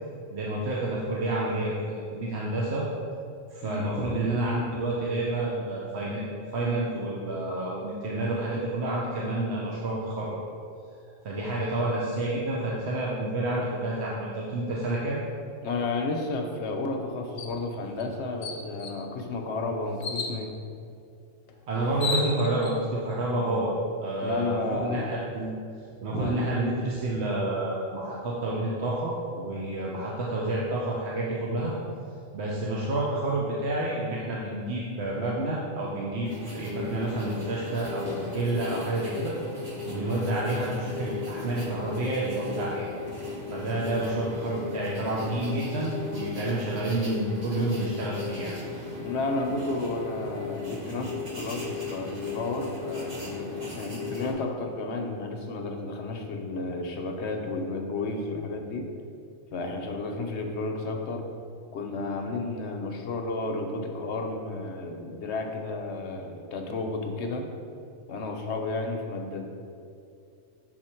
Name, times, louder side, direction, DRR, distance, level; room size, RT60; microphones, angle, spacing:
voice 1, 0.3-2.9 3.5-10.4 11.2-15.2 21.7-23.7 24.0-25.5 26.0-31.8 32.3-39.3 39.9-42.9 43.5-48.5, right 2 dB, 60° right, -5 dB, 1.0 m, -29 dB
voice 2, 3.6-4.2 15.6-20.5 24.2-25.0 26.1-26.4 39.9-40.2 48.9-58.9 59.5-61.3 61.7-67.5 68.1-69.5, left 3 dB, 65° left, 3 dB, 0.9 m, -32 dB
sound 1, 17.4-17.6 18.0-18.1 18.4-19.0 20.0-20.4 21.5-21.6 21.8-22.7, left 4 dB, 85° left, 1.1 m, -32 dB
sound 2, 36.2-54.3, left 4 dB, 35° right, 1.1 m, -37 dB
6.5 x 4.4 x 4.4 m, 2.5 s
omnidirectional pair, 1.3 m